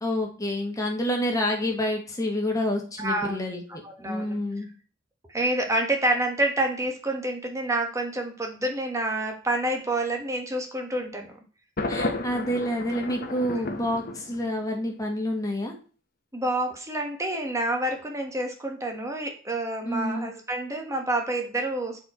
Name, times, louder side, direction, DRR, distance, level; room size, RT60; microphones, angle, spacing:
voice 1, 0.0-4.7 11.9-15.8 19.8-20.3, left 1 dB, 20° left, 1 dB, 1.5 m, -28 dB
voice 2, 3.0-3.4 3.8-4.4 5.3-11.3 13.3-13.6 16.3-22.0, right 1 dB, 15° right, 2 dB, 1.3 m, -28 dB
Thunder, 11.8-14.8, left 2 dB, 50° left, 1.0 m, -32 dB
7.4 x 4.4 x 4.3 m, 0.38 s
head